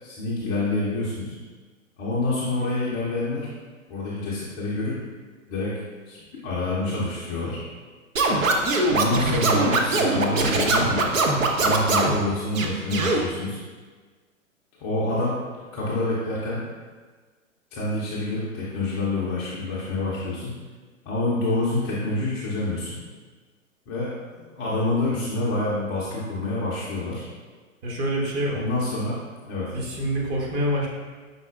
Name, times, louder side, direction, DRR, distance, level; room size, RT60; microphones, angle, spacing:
voice 1, 0.0-1.3 2.0-3.5 3.9-5.0 5.5-5.8 6.1-7.6 8.9-11.1 11.6-13.6 14.8-15.4 15.7-16.6 17.7-20.5 21.1-23.0 23.9-27.2 28.5-29.7, left 2 dB, 20° left, -7 dB, 0.4 m, -27 dB
Scratching (performance technique), 8.2-12.2 12.5-13.2, right 3 dB, 75° right, 0.7 m, -21 dB
voice 2, 27.8-28.6 29.7-30.9, equal, 30° right, -3 dB, 0.8 m, -26 dB
5.5 x 3.7 x 2.4 m, 1.4 s
figure-of-eight pair, 110°, 40 cm